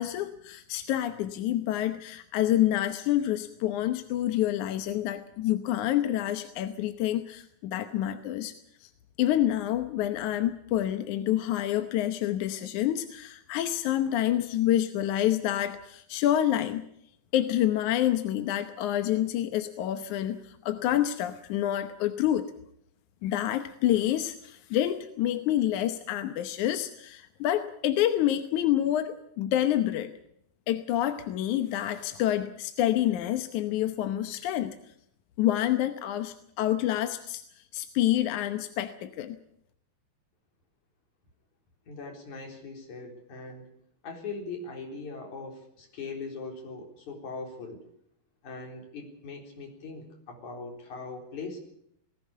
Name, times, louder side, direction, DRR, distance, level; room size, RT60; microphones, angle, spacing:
voice 1, 0.0-8.5 8.8-8.9 9.2-16.9 17.3-22.5 23.2-30.1 30.7-34.8 35.4-39.4, left 12 dB, 70° left, 8 dB, 2.1 m, -28 dB
voice 2, 41.9-43.7 44.0-47.8 48.4-51.6, left 4 dB, 50° left, 2 dB, 5.3 m, -40 dB
19.5 x 16.5 x 8.4 m, 0.73 s
omnidirectional pair, 4.3 m